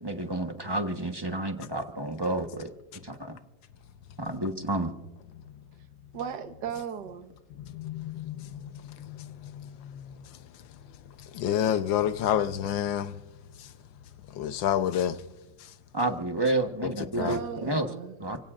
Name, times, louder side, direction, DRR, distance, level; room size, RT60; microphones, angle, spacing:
voice 1, 0.0-2.7 3.0-3.4 4.2-4.9 15.9-17.9 18.2-18.4, right 2 dB, 15° right, 0.9 m, -30 dB
voice 2, 6.1-7.3 17.2-18.1, right 8 dB, 70° right, 1.7 m, -35 dB
voice 3, 7.5-10.8 11.0-13.2 13.5-13.7 14.3-15.2 15.6-15.7 16.8-17.4, left 10 dB, 90° left, 1.5 m, -30 dB
29.5 x 16.5 x 2.5 m
omnidirectional pair, 2.0 m